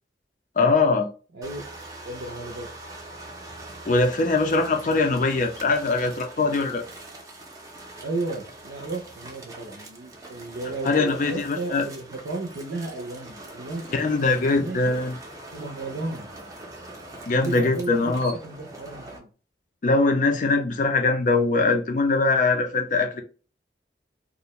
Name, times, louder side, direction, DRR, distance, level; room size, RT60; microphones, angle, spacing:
voice 1, 0.6-1.1 3.9-6.8 10.8-11.8 13.9-15.1 17.3-18.3 19.8-23.2, left 3 dB, 45° left, 0.4 m, -22 dB
sound 1, 1.4-19.2, right 2 dB, 20° right, 0.5 m, -43 dB
voice 2, 2.0-2.7 8.0-15.0 15.5-16.3 17.3-19.3, right 2 dB, 90° right, 0.5 m, -34 dB
2.4 x 2.0 x 2.9 m
head